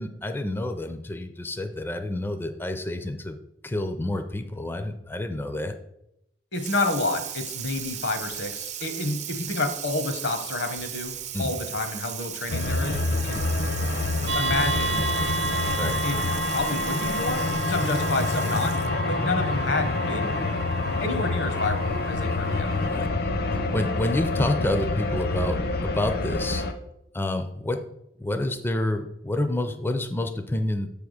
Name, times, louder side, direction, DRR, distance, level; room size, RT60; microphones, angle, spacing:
voice 1, 0.0-3.4 3.6-5.7 11.3-11.5 15.8-16.0 22.8-23.1 23.7-26.6 27.1-27.8 28.2-30.9, left 1 dB, 10° left, 7 dB, 0.4 m, -28 dB
voice 2, 6.5-13.4 14.3-15.0 16.0-16.2 16.5-18.8 19.1-20.3 21.0-22.9, left 2 dB, 80° left, 7 dB, 1.0 m, -29 dB
Water tap faucet / Sink (filling or washing), 6.5-19.0, right 10 dB, 40° right, 0.5 m, -37 dB
sound 1, 12.5-26.7, left 3 dB, 60° left, 0.6 m, -27 dB
sound 2, 14.3-23.0, right 4 dB, 60° right, 0.9 m, -32 dB
7.1 x 3.5 x 6.3 m, 0.83 s
head